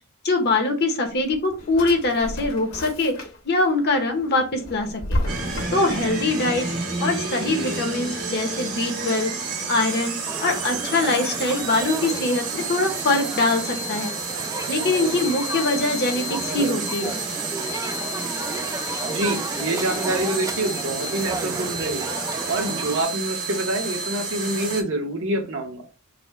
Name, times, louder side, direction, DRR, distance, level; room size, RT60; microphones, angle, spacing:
voice 1, 0.2-3.1 3.4-5.2 5.7-6.7 7.0-9.3 9.7-14.1 14.7-17.1, left 2 dB, 50° left, 4 dB, 0.9 m, -23 dB
Drawer open or close, 1.1-3.6 4.0-6.1, left 1 dB, 65° left, 1.4 m, -31 dB
sound 1, 5.3-24.8, right 3 dB, 90° right, 1.8 m, -30 dB
voice 2, 7.4-7.8 19.1-22.0 22.5-25.8, right 1 dB, 65° right, 4 dB, 1.1 m, -26 dB
sound 2, 10.3-23.0, right 3 dB, 15° right, 0.4 m, -33 dB
4.1 x 2.2 x 4.3 m, 0.32 s
head